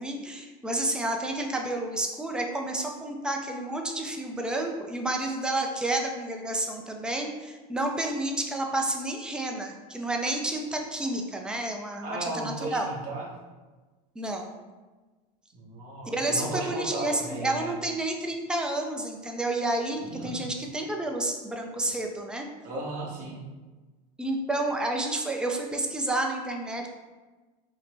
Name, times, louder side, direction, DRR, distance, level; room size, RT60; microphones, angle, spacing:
voice 1, 0.0-12.9 14.2-14.5 16.1-22.5 24.2-26.9, right 2 dB, 5° right, 2 dB, 0.3 m, -30 dB
voice 2, 12.0-13.3 15.5-17.7 20.0-20.5 22.6-23.4, right 2 dB, 45° right, -3 dB, 1.1 m, -35 dB
5.5 x 2.1 x 3.3 m, 1.3 s
supercardioid pair, 145°, 19 cm